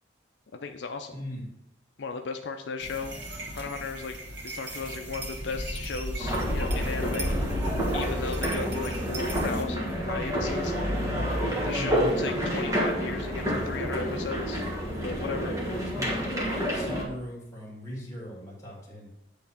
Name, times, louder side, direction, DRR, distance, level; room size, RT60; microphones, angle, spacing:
voice 1, 0.5-1.2 2.0-3.1 3.6-4.2 4.4-7.3 7.9-11.0 11.6-14.7 15.0-15.5, left 4 dB, 70° left, 5 dB, 0.5 m, -36 dB
voice 2, 1.1-1.5 11.7-12.2 15.3-19.1, equal, 15° left, -4 dB, 2.2 m, -39 dB
sound 1, 2.8-9.6, equal, 65° right, 1.8 m, -35 dB
sound 2, 6.2-17.0, equal, 20° right, 1.5 m, -29 dB
8.6 x 3.5 x 5.7 m, 0.84 s
head